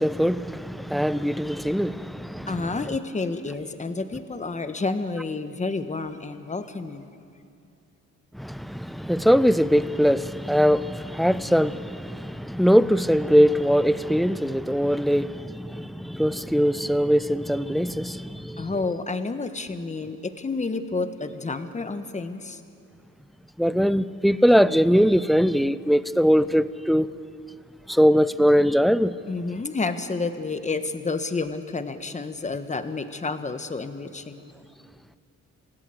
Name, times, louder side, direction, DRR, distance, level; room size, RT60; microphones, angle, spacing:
voice 1, 0.0-2.8 8.3-18.7 23.6-27.1 27.9-29.2, equal, ahead, 0.6 m, -21 dB
voice 2, 2.5-7.1 18.6-22.6 29.3-34.5, left 3 dB, 25° left, 1.4 m, -30 dB
27.0 x 17.0 x 8.0 m
cardioid pair, 90°, 30 cm